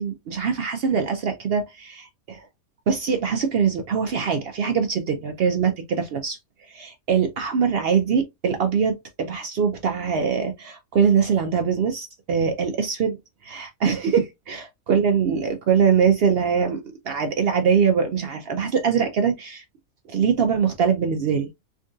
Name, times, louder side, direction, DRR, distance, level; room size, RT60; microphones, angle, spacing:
voice 1, 0.0-2.5 2.9-13.2 13.4-19.6 20.1-21.5, right 6 dB, 75° right, 0.5 m, -23 dB
3.6 x 2.6 x 2.3 m
omnidirectional pair, 1.5 m